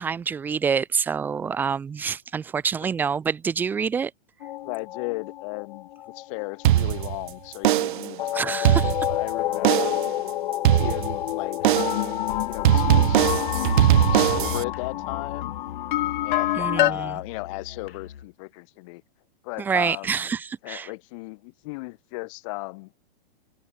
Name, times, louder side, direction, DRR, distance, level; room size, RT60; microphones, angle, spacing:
voice 1, 0.0-4.1 8.3-8.9 16.6-17.1 19.6-20.9, right 6 dB, 5° right, 0.5 m, -27 dB
sound 1, 4.4-7.9 8.2-16.9, left 14 dB, 60° left, 0.6 m, -28 dB
voice 2, 4.6-5.9 6.1-10.0 10.8-11.6 12.4-13.2 13.5-15.5 16.2-19.0 19.4-20.3 20.6-22.9, left 27 dB, 35° left, 1.1 m, -36 dB
sound 2, 6.6-7.3 7.6-8.1 8.5-9.3 9.6-10.1 10.6-11.3 11.6-12.1 12.6-14.6, right 14 dB, 60° right, 0.6 m, -20 dB
Musical instrument, 11.6-18.3, left 8 dB, 90° left, 6.7 m, -43 dB
hypercardioid pair, 155°, 29 cm